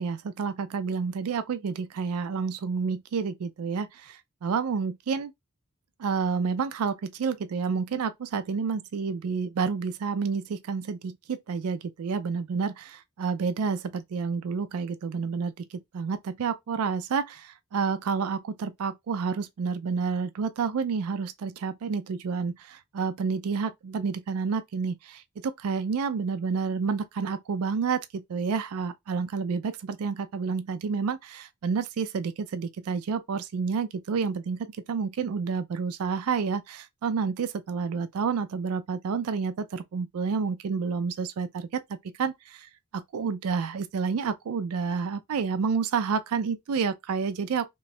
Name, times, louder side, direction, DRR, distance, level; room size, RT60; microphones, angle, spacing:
voice 1, 0.0-5.3 6.0-41.8 42.2-47.7, right 5 dB, 90° right, 0.4 m, -29 dB
3.1 x 2.3 x 4.1 m
head